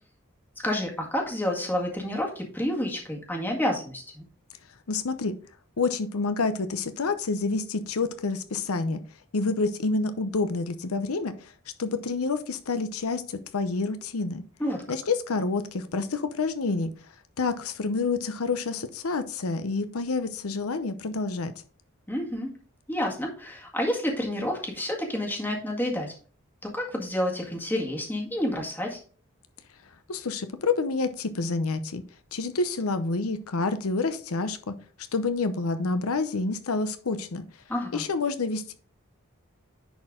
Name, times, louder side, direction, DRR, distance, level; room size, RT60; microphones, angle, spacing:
voice 1, 0.6-4.2 14.6-14.8 22.1-22.5 22.9-26.1 26.7-29.0 37.7-38.0, left 1 dB, 10° left, 1.8 m, -29 dB
voice 2, 4.9-5.4 5.8-9.0 9.3-11.5 11.8-14.4 14.9-16.9 17.4-21.5 30.1-32.0 32.3-34.7 35.1-37.4 37.9-38.7, left 3 dB, 90° left, 0.7 m, -28 dB
10.5 x 4.4 x 3.7 m
head